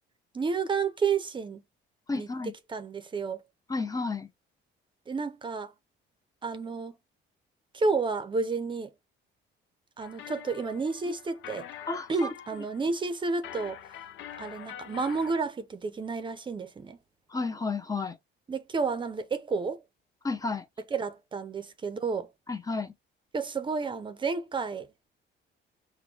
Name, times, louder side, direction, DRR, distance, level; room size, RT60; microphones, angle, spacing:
voice 1, 0.3-1.6 2.1-3.4 5.1-5.7 6.4-6.9 7.7-8.9 10.0-11.7 12.1-13.8 14.4-17.0 18.5-19.8 20.9-22.3 23.3-24.9, right 4 dB, 25° right, 0.6 m, -31 dB
voice 2, 2.1-2.5 3.7-4.3 11.9-12.3 17.3-18.2 20.2-20.7 22.5-22.9, left 3 dB, 15° left, 0.5 m, -32 dB
sound 1, 10.0-15.4, left 10 dB, 75° left, 0.7 m, -45 dB
5.9 x 2.2 x 3.4 m
cardioid pair, 150°, 20 cm